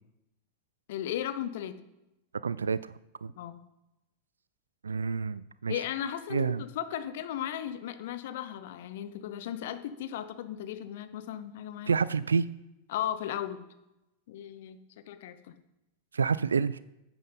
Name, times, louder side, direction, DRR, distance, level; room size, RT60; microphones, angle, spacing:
voice 1, 0.9-1.8 3.4-3.6 5.7-12.0 12.9-13.7 14.3-14.8 15.1-15.5, left 11 dB, 55° left, 11 dB, 0.9 m, -36 dB
voice 2, 2.4-2.9 3.2-3.3 4.8-5.8 6.3-6.6 11.9-12.5 16.1-16.8, right 5 dB, 70° right, 18 dB, 0.3 m, -28 dB
10.5 x 9.1 x 5.4 m, 0.93 s
figure-of-eight pair, 90°, 0 cm